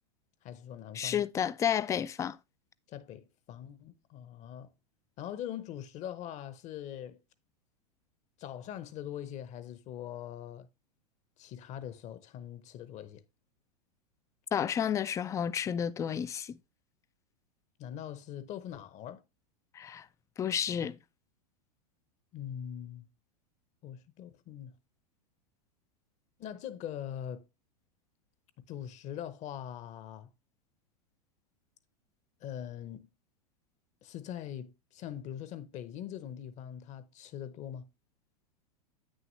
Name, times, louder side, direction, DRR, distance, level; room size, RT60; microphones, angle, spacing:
voice 1, 0.4-1.2 2.9-4.7 5.2-7.2 8.4-10.7 11.4-13.2 17.8-19.2 22.3-23.1 23.8-24.7 26.4-27.4 28.7-30.3 32.4-33.1 34.0-37.8, left 10 dB, 35° left, 0.8 m, -42 dB
voice 2, 0.9-2.4 14.5-16.6 19.7-20.1 20.4-21.0, left 9 dB, 15° left, 0.3 m, -31 dB
8.8 x 6.4 x 3.1 m
figure-of-eight pair, 95°, 21 cm